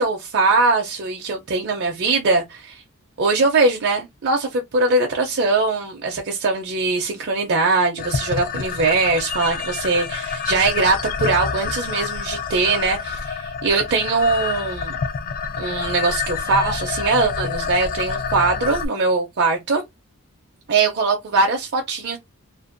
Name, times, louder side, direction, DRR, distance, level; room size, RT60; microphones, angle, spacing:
voice 1, 0.0-2.8 3.2-14.9 15.6-19.8 20.7-22.2, right 3 dB, 50° right, 0.5 m, -21 dB
sound 1, 8.0-18.9, left 5 dB, 40° left, 0.3 m, -27 dB
2.5 x 2.1 x 2.5 m
head